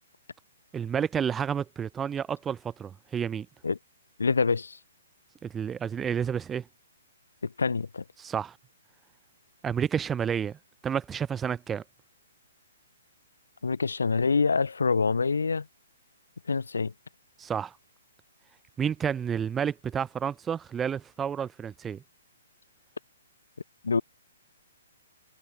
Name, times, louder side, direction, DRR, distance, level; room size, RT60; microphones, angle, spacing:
voice 1, 0.7-3.5 5.4-6.7 8.2-8.6 9.6-10.6 10.8-11.8 17.4-17.7 18.8-22.0, right 7 dB, 15° right, 0.4 m, -30 dB
voice 2, 4.2-4.8 7.4-8.0 13.6-15.7 16.5-16.9 23.8-24.0, left 4 dB, 85° left, 1.7 m, -26 dB
hypercardioid pair, 135°, 0 cm